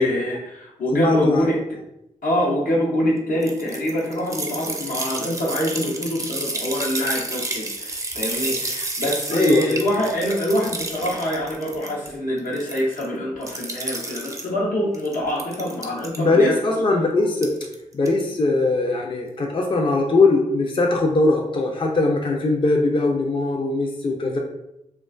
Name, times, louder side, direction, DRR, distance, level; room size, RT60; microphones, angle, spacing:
voice 1, 0.0-1.6 2.2-16.5, equal, 80° left, -3 dB, 0.7 m, -25 dB
voice 2, 0.9-1.5 9.3-9.8 16.2-17.6 17.9-24.4, left 2 dB, 35° left, 0 dB, 0.4 m, -20 dB
sound 1, 3.4-12.1 12.4-13.1 13.4-14.5 14.9-16.2 17.3-17.7 18.1-18.2, right 2 dB, 25° right, 0.4 m, -30 dB
2.4 x 2.2 x 2.3 m, 0.84 s
cardioid pair, 50°, 14 cm